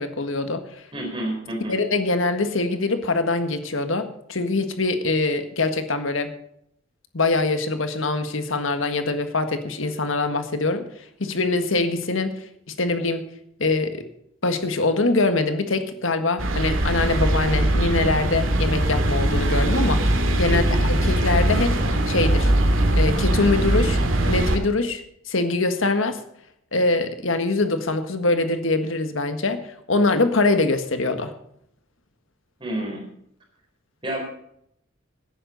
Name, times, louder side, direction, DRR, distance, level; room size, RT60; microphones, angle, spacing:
voice 1, 0.0-0.8 1.7-6.3 7.1-10.9 11.2-12.4 12.8-13.3 13.6-14.0 14.4-20.6 20.9-21.8 22.1-22.5 23.0-24.0 24.3-26.2 26.7-31.3, left 3 dB, 75° left, 8 dB, 1.6 m, -23 dB
voice 2, 0.9-1.8 20.5-20.8 32.6-33.1 34.0-34.2, right 1 dB, 25° right, 0 dB, 4.6 m, -29 dB
sound 1, 16.4-24.6, right 1 dB, 75° right, 2.2 m, -21 dB
17.0 x 10.0 x 4.0 m, 0.72 s
head